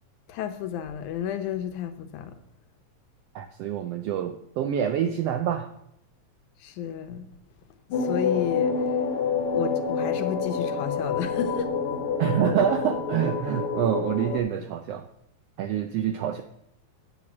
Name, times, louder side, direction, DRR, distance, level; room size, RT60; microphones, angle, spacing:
voice 1, 0.3-2.3 6.6-7.3 8.0-8.7 9.5-11.7, left 9 dB, 90° left, 9 dB, 2.3 m, -31 dB
voice 2, 3.3-5.7 12.2-15.1 15.6-16.4, right 9 dB, 85° right, 8 dB, 1.4 m, -26 dB
sound 1, 7.9-14.4, left 5 dB, 60° left, 1.6 m, -27 dB
8.0 x 7.3 x 6.1 m, 0.78 s
omnidirectional pair, 3.4 m